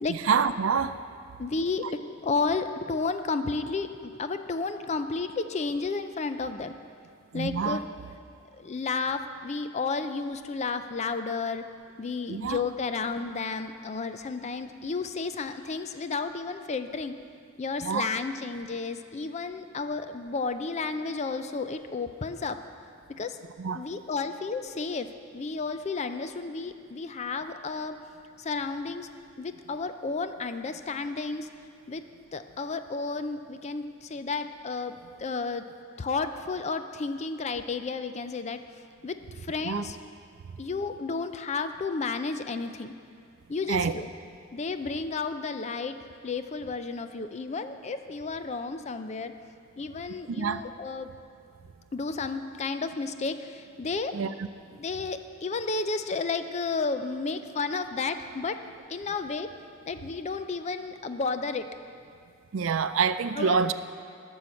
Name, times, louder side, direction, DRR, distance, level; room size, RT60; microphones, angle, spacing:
voice 1, 0.1-1.0 7.3-7.8 12.3-12.6 17.8-18.1 23.6-23.9 39.6-39.8 43.7-43.9 50.3-50.6 54.1-54.3 62.5-63.7, right 6 dB, 65° right, 13 dB, 0.4 m, -26 dB
voice 2, 1.4-6.7 7.3-7.8 8.5-11.6 12.0-17.1 17.6-22.6 23.2-23.4 23.7-25.1 25.3-28.0 28.4-29.1 29.4-31.5 31.9-32.0 32.3-35.7 36.0-38.6 39.0-40.0 40.6-42.9 43.5-44.1 44.5-46.0 46.2-49.3 49.8-51.1 51.9-54.2 54.7-58.6 58.9-59.5 59.9-61.6 63.4-63.7, left 4 dB, 30° left, 9 dB, 0.4 m, -32 dB
12.0 x 6.4 x 7.0 m, 2.3 s
head